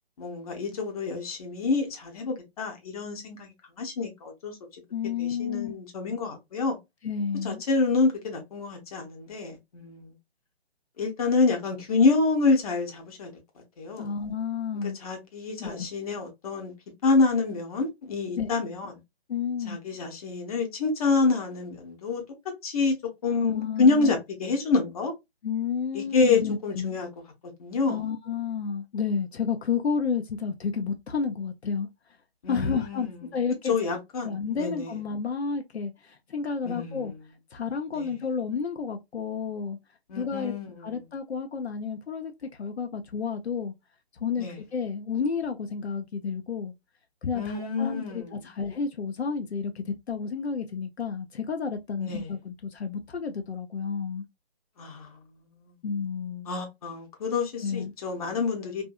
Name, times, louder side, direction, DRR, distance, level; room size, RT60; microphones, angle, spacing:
voice 1, 0.2-3.5 3.8-4.5 5.2-6.8 7.4-10.1 11.0-13.3 13.8-14.1 15.0-16.7 17.0-18.9 19.6-22.2 22.6-22.9 23.2-25.1 25.9-27.1 27.6-28.0 32.4-33.1 33.7-34.9 36.6-37.1 38.0-38.1 40.1-40.9 44.4-44.6 47.3-48.2 52.0-52.3 54.8-55.2 56.5-58.8, left 4 dB, 35° left, 0.9 m, -27 dB
voice 2, 4.9-5.7 7.0-7.6 14.0-15.0 15.6-15.9 18.4-18.5 19.3-19.8 23.4-24.1 25.4-26.9 27.9-31.9 32.5-33.8 34.2-37.1 37.5-39.8 40.1-40.5 40.8-42.3 42.6-43.7 44.2-46.7 47.2-54.2 55.8-56.5 57.6-57.9, left 6 dB, 80° left, 0.6 m, -31 dB
2.6 x 2.5 x 2.3 m
figure-of-eight pair, 145°, 32 cm